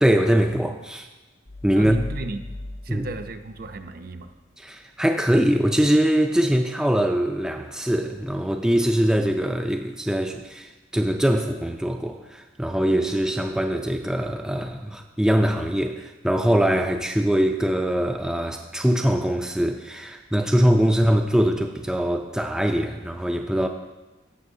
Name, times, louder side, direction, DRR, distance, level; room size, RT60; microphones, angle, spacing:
voice 1, 0.0-1.1 1.6-2.0 2.9-3.1 4.6-23.7, equal, 5° right, 3 dB, 0.3 m, -22 dB
sound 1, 1.5-4.4, left 1 dB, 55° left, 0.9 m, -38 dB
voice 2, 1.7-2.5 2.8-4.3, right 2 dB, 50° right, 7 dB, 0.5 m, -34 dB
16.0 x 6.2 x 2.7 m, 1.1 s
head